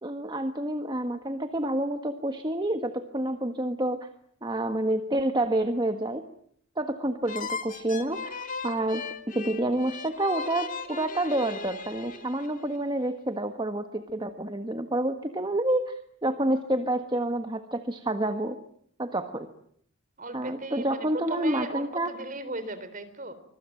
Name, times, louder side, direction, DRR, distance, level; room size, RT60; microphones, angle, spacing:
voice 1, 0.0-4.1 4.4-6.2 6.8-9.1 9.3-18.6 19.0-19.5 20.3-22.1, right 1 dB, 20° right, 7 dB, 1.4 m, -28 dB
sound 1, 7.3-12.8, left 5 dB, 35° left, 2.2 m, -37 dB
voice 2, 20.2-23.3, right 2 dB, 35° right, 12 dB, 3.7 m, -37 dB
25.5 x 23.0 x 9.0 m, 0.68 s
head